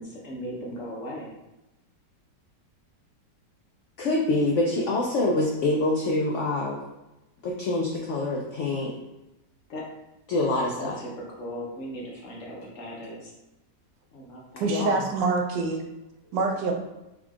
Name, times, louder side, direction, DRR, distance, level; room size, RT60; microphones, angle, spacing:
voice 1, 0.0-1.3 9.7-9.9 10.8-13.3 14.1-14.7, equal, 60° left, -2 dB, 1.0 m, -38 dB
voice 2, 4.0-6.8 7.4-8.9 10.3-10.9 14.7-15.0, left 2 dB, 85° left, -1 dB, 0.6 m, -25 dB
voice 3, 14.6-15.8 16.3-16.7, right 3 dB, 85° right, 3 dB, 1.2 m, -25 dB
3.6 x 3.6 x 2.3 m, 0.96 s
omnidirectional pair, 1.8 m